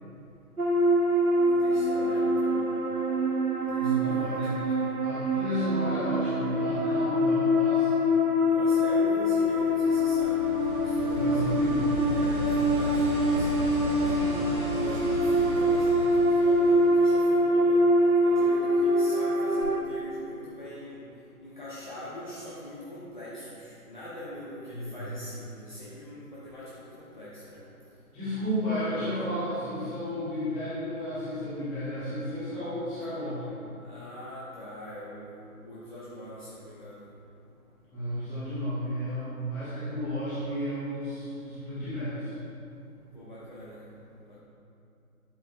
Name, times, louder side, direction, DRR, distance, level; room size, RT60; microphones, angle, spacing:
sound 1, 0.6-19.8, equal, 85° right, 1.1 m, -24 dB
voice 1, 1.5-2.6 3.7-4.9 8.4-13.5 13.7-14.1 14.7-17.8 18.2-21.0 21.4-27.6 33.8-35.4 35.6-37.0 43.1-43.8, left 1 dB, 30° left, -9 dB, 1.0 m, -42 dB
voice 2, 3.7-7.9 11.1-11.8 12.1-12.5 24.7-25.0 28.1-33.5 37.9-42.3, equal, 5° left, -16 dB, 1.8 m, -32 dB
sound 2, 9.0-17.5 19.6-19.7, right 1 dB, 35° right, 2.0 m, -36 dB
11.5 x 7.3 x 2.6 m, 2.6 s
figure-of-eight pair, 155°, 44 cm